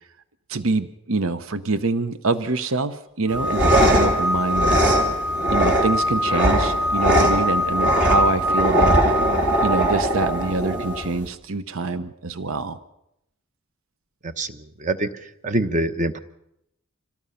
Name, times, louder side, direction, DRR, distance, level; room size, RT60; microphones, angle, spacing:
voice 1, 0.5-4.8 5.5-9.0 9.6-12.8, right 3 dB, 70° right, 12 dB, 0.9 m, -25 dB
sound 1, 3.3-11.1, left 1 dB, 20° right, 3.1 m, -25 dB
sound 2, 3.3-11.3, right 1 dB, 55° right, 3.6 m, -21 dB
voice 2, 14.2-15.1 15.4-16.2, right 2 dB, 35° right, 9 dB, 1.0 m, -25 dB
26.5 x 18.0 x 5.7 m, 0.82 s
head